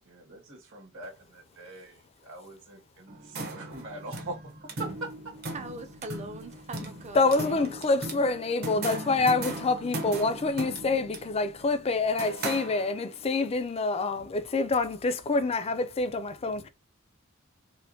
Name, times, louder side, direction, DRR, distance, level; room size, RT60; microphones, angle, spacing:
voice 1, 0.0-5.3 8.3-8.9, right 2 dB, 65° right, 1.6 m, -43 dB
sound 1, 3.1-13.2, right 2 dB, 50° right, 0.9 m, -38 dB
voice 2, 5.5-7.8, right 2 dB, 30° right, 0.4 m, -42 dB
voice 3, 7.1-16.7, left 3 dB, 30° left, 0.4 m, -27 dB
4.1 x 2.1 x 2.7 m
head